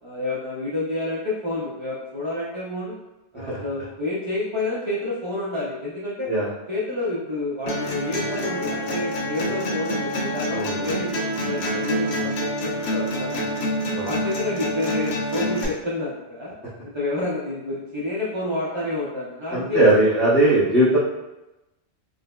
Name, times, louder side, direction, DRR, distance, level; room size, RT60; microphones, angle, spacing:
voice 1, 0.0-3.0 3.3-6.3 6.7-13.3 13.8-16.5 16.8-20.0, left 2 dB, 40° right, -7 dB, 0.4 m, -29 dB
sound 1, 7.7-15.6, equal, 70° left, 0.9 m, -27 dB
voice 2, 10.5-10.9 13.9-14.1 19.5-21.0, right 1 dB, ahead, -12 dB, 0.6 m, -19 dB
4.8 x 2.0 x 2.2 m, 0.99 s
omnidirectional pair, 1.1 m